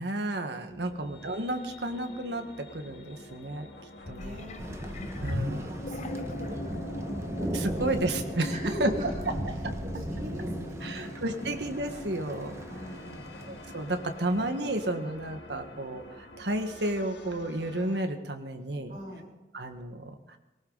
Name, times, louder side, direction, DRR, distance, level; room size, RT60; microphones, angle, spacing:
voice 1, 0.0-3.7 4.1-4.4 5.2-5.6 7.5-8.5 8.8-8.9 9.6-9.7 10.8-12.5 13.5-16.0 16.4-18.9 19.5-20.4, right 1 dB, 80° right, 6 dB, 1.6 m, -32 dB
voice 2, 0.6-1.2 4.1-4.8 5.4-7.2 7.7-11.5 12.7-13.4 18.9-19.2, equal, 45° right, -3 dB, 4.4 m, -42 dB
sound 1, 0.7-18.0, left 1 dB, 85° left, 1.9 m, -44 dB
sound 2, 4.0-6.6 7.2-7.3, left 2 dB, 40° left, 0.7 m, -38 dB
Thunder, 4.6-14.3, equal, 15° right, 1.1 m, -37 dB
19.5 x 18.0 x 4.1 m, 1.1 s
head